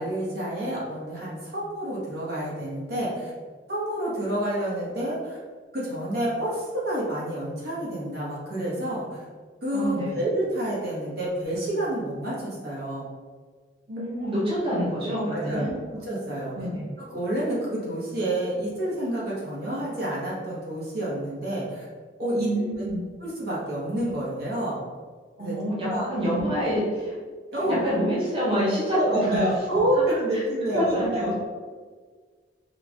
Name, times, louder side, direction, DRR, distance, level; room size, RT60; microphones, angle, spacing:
voice 1, 0.0-3.3 3.7-5.4 5.7-9.2 9.6-13.1 14.2-14.3 15.3-15.7 16.1-16.5 17.0-21.8 22.2-22.5 23.2-24.8 25.4-25.6 25.9-26.0 27.5-27.9 28.9-31.3, right 1 dB, 60° right, -7 dB, 1.4 m, -28 dB
voice 2, 9.7-10.1 13.9-15.7 16.5-16.8 22.4-23.0 25.4-27.2 27.6-29.5 30.3-30.4 30.7-31.3, equal, 30° right, -9 dB, 1.1 m, -27 dB
4.6 x 2.4 x 3.5 m, 1.5 s
head